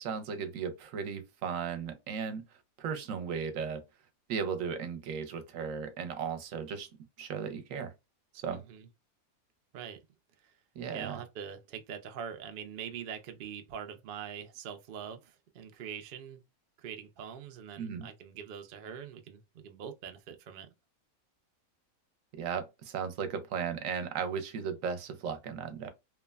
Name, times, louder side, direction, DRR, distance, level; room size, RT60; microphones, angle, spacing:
voice 1, 0.0-2.4 2.8-3.8 4.3-6.9 7.2-7.9 8.4-8.6 10.8-11.2 17.8-18.1 22.3-25.9, right 6 dB, 70° right, 0.9 m, -36 dB
voice 2, 8.5-8.9 9.7-10.0 10.4-10.5 10.9-16.4 16.8-20.7, right 8 dB, 90° right, 0.4 m, -43 dB
3.1 x 2.1 x 2.2 m
omnidirectional pair, 1.5 m